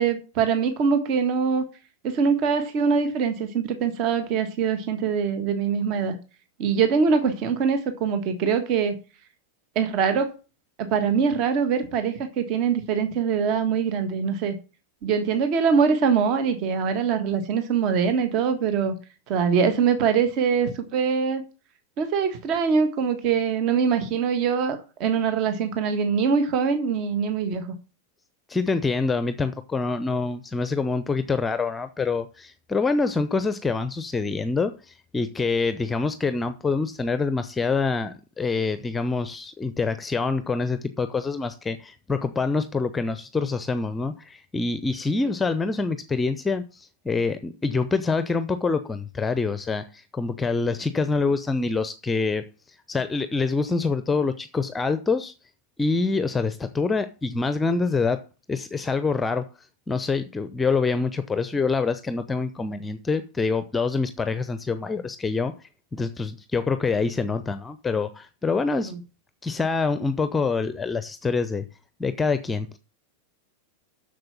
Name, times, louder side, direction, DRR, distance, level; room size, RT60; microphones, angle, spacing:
voice 1, 0.0-1.6 2.0-6.1 6.6-9.0 9.7-10.3 10.8-14.5 15.0-18.9 19.3-21.4 22.0-27.7, right 6 dB, 40° right, 1.5 m, -23 dB
voice 2, 28.5-55.3 55.8-58.2 58.5-59.5 59.9-68.9 69.4-71.6 72.0-72.8, left 4 dB, 15° left, 0.7 m, -26 dB
7.8 x 6.7 x 7.1 m
figure-of-eight pair, 90°, 0 cm